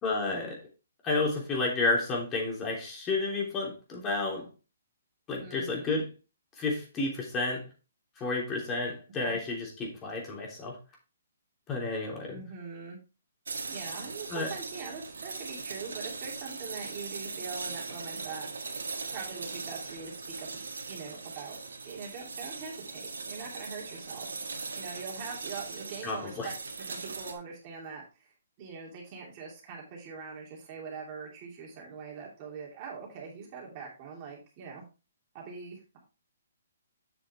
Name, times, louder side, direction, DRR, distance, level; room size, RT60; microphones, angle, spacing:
voice 1, 0.0-0.6 1.0-4.5 5.3-6.1 6.6-7.7 8.2-10.8 11.7-12.3 14.3-14.5 26.0-26.5, left 3 dB, 20° left, -1 dB, 3.2 m, -31 dB
voice 2, 5.4-6.0 9.2-9.4 12.3-13.0 13.7-18.8 19.1-20.6 20.9-21.6 21.8-24.4 24.7-34.8 35.3-36.0, right 5 dB, 30° right, -2 dB, 2.8 m, -43 dB
sound 1, 13.5-27.3, right 4 dB, 90° right, 1.6 m, -40 dB
8.0 x 6.2 x 3.3 m, 0.31 s
hypercardioid pair, 150°, 0 cm